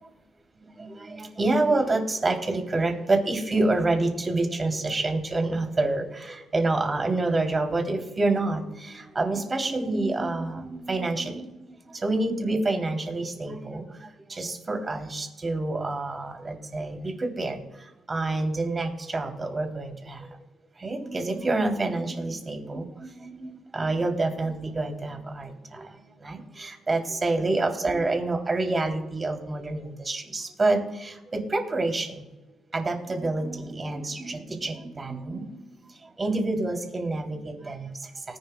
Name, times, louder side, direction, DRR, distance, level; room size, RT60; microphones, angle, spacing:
voice 1, 0.6-11.5 11.8-17.6 18.1-20.3 20.8-32.2 32.7-35.6 36.0-38.4, right 2 dB, 30° right, 3 dB, 2.9 m, -28 dB
19.0 x 11.0 x 2.2 m, 1.1 s
cardioid pair, 90°, 0 cm